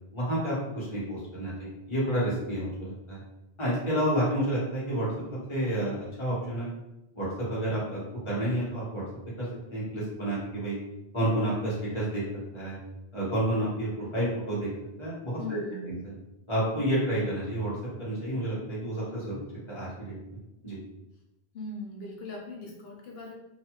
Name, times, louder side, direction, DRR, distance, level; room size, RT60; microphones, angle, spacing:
voice 1, 0.1-3.2 3.6-5.1 5.5-6.7 7.1-8.0 8.2-9.0 9.4-10.8 11.1-12.2 12.5-12.8 13.1-14.7 15.0-15.9 16.5-17.7 18.0-19.4 19.7-20.4 20.6-20.8, right 1 dB, 30° left, -7 dB, 1.2 m, -30 dB
voice 2, 15.4-15.9 21.5-23.3, left 2 dB, 65° left, -1 dB, 0.9 m, -39 dB
2.6 x 2.3 x 2.9 m, 0.92 s
omnidirectional pair, 1.1 m